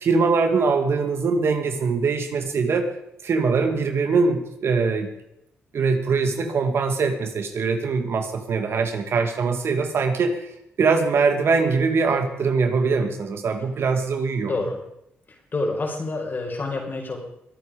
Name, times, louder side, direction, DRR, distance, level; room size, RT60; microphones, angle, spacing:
voice 1, 0.0-2.9 3.2-5.1 5.7-10.5 10.8-14.5, right 4 dB, 65° right, 7 dB, 2.2 m, -22 dB
voice 2, 14.5-14.8 15.3-17.2, left 2 dB, 45° left, 1 dB, 5.3 m, -28 dB
22.0 x 9.1 x 5.2 m, 0.81 s
cardioid pair, 65°, 5 cm